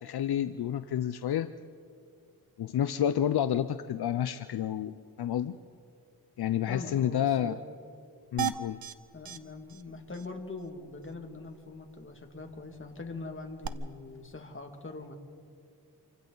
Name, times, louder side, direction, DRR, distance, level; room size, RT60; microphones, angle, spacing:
voice 1, 0.0-1.5 2.6-5.5 6.4-7.5 8.3-8.8, left 10 dB, 75° left, 12 dB, 0.6 m, -29 dB
voice 2, 6.7-7.6 9.1-15.1, left 3 dB, 30° left, 4 dB, 2.2 m, -42 dB
sound 1, 8.4-8.9 9.3-9.4 9.7-9.8 10.1-10.3 13.6-13.7, right 10 dB, 65° right, 0.9 m, -33 dB
28.0 x 25.0 x 4.0 m, 2.3 s
wide cardioid pair, 95°, 39 cm